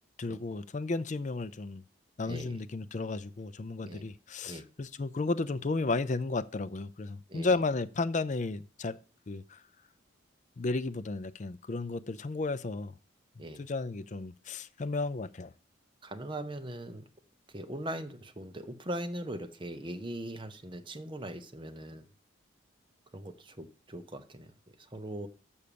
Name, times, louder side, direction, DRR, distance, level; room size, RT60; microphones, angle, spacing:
voice 1, 0.2-1.8 2.2-9.0 9.3-9.6 10.6-12.9 13.6-15.5, left 3 dB, 35° left, 0.4 m, -33 dB
voice 2, 2.2-2.6 3.9-4.0 4.4-4.6 7.3-7.5 13.4-13.7 16.0-17.1 17.5-22.0 23.1-25.3, right 1 dB, 25° right, 0.7 m, -40 dB
7.1 x 6.4 x 6.8 m
head